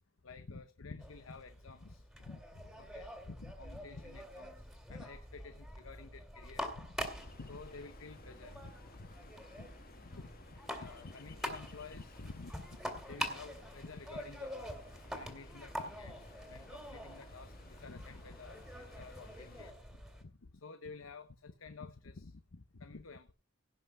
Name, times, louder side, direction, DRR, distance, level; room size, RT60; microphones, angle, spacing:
voice 1, 0.2-7.1 7.4-9.1 9.6-9.7 10.0-14.7 15.1-23.3, left 3 dB, 80° left, 0.9 m, -51 dB
sound 1, 1.0-20.2, equal, ahead, 2.2 m, -46 dB
Ocean, 7.0-19.7, left 3 dB, 45° left, 1.5 m, -59 dB
17.0 x 5.7 x 5.3 m
head